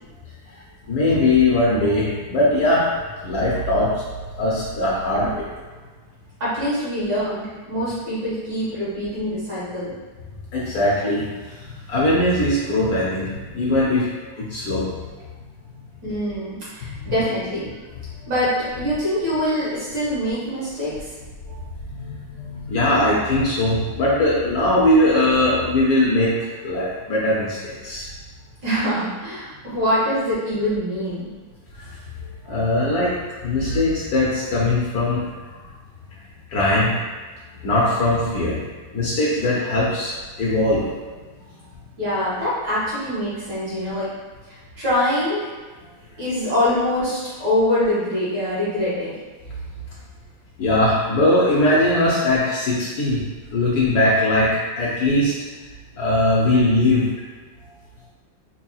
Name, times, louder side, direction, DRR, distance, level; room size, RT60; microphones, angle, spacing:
voice 1, 0.9-2.9 3.2-4.0 4.4-5.5 10.5-11.5 11.9-14.1 14.4-14.9 17.0-17.1 21.9-28.1 31.8-31.9 32.4-35.5 36.5-36.9 37.6-38.6 38.9-41.2 41.5-41.6 50.6-53.2 53.5-54.5 54.8-55.3 56.0-57.1, left 1 dB, 70° left, -6 dB, 0.9 m, -20 dB
voice 2, 6.4-9.9 16.0-17.7 18.3-21.1 28.6-31.3 42.0-44.1 44.5-45.4 46.2-49.2, left 1 dB, 60° right, -10 dB, 2.0 m, -24 dB
4.6 x 2.9 x 2.3 m, 1.3 s
omnidirectional pair, 2.3 m